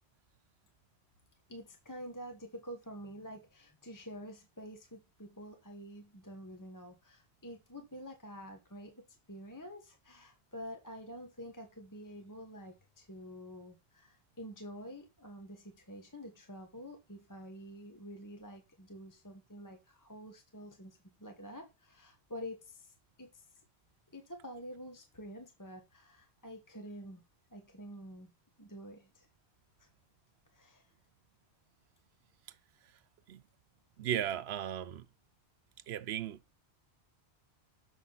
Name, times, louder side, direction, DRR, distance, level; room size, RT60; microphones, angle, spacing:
voice 1, 1.5-23.5 24.1-27.2 27.5-28.3 28.6-29.3 29.8-29.9 30.5-30.9, equal, 20° left, 1.2 m, -48 dB
voice 2, 34.0-35.1 35.9-36.4, right 10 dB, 75° right, 0.9 m, -36 dB
7.0 x 6.2 x 3.9 m
omnidirectional pair, 1.1 m